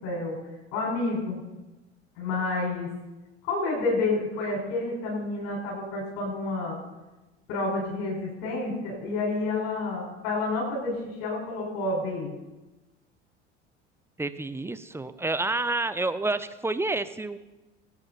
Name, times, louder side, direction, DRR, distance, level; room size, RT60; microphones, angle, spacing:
voice 1, 0.0-0.4 0.7-1.4 2.2-2.9 3.4-6.8 7.5-12.3, left 2 dB, 55° left, -2 dB, 5.0 m, -29 dB
voice 2, 14.2-17.4, right 2 dB, 5° right, 12 dB, 0.6 m, -29 dB
21.5 x 9.0 x 4.1 m, 1.1 s
figure-of-eight pair, 70°, 35 cm